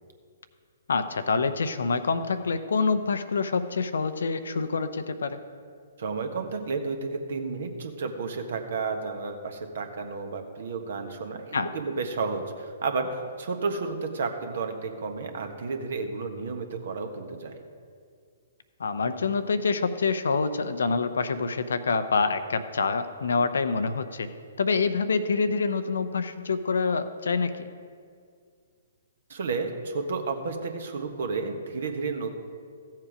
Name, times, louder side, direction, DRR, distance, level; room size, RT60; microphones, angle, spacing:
voice 1, 0.9-5.4 11.5-11.7 18.8-24.3 24.6-27.7, left 4 dB, 70° left, 10 dB, 0.7 m, -26 dB
voice 2, 6.0-17.6 29.3-32.3, right 4 dB, 60° right, 5 dB, 1.4 m, -32 dB
14.5 x 7.5 x 5.0 m, 2.2 s
figure-of-eight pair, 120°, 0 cm